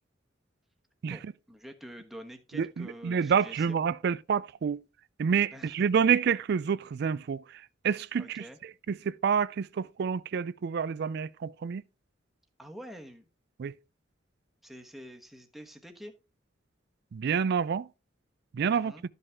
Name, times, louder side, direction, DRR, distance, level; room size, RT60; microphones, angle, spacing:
voice 1, 1.1-3.8 5.5-5.9 8.2-8.6 12.6-13.2 14.6-16.1 18.7-19.0, equal, ahead, 1.2 m, -47 dB
voice 2, 2.5-4.8 5.2-8.4 8.9-11.8 13.6-13.7 17.1-17.9 18.5-18.9, right 6 dB, 60° right, 0.4 m, -28 dB
12.5 x 5.5 x 3.5 m
head